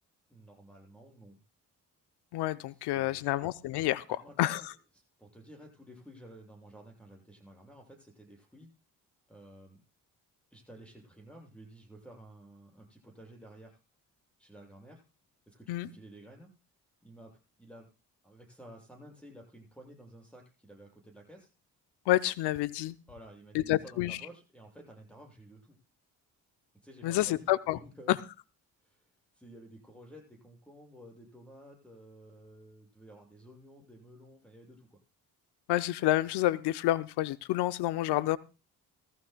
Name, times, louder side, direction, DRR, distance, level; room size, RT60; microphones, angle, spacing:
voice 1, 0.3-1.4 2.7-3.3 4.1-4.7 5.2-8.7 9.3-9.8 10.5-13.8 14.4-15.0 15.5-16.5 17.0-17.9 18.2-21.5 23.1-25.8 26.8-28.1 28.8-29.1 29.3-35.0, right 1 dB, 5° left, 0 dB, 7.1 m, -53 dB
voice 2, 2.3-4.0 4.4-4.6 15.7-15.9 22.1-22.9 23.5-24.2 27.0-27.8 35.7-38.4, left 15 dB, 75° left, 15 dB, 0.7 m, -29 dB
18.5 x 14.0 x 2.2 m, 0.30 s
hypercardioid pair, 50°, 41 cm